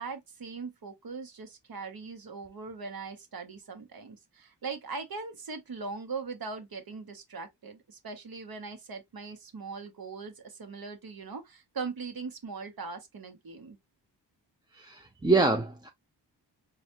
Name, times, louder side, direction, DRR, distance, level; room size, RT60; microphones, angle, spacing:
voice 1, 0.0-13.8, right 4 dB, 55° right, 1.1 m, -40 dB
voice 2, 14.7-15.9, right 3 dB, 10° right, 0.4 m, -26 dB
3.9 x 2.3 x 2.9 m
cardioid pair, 65°, 44 cm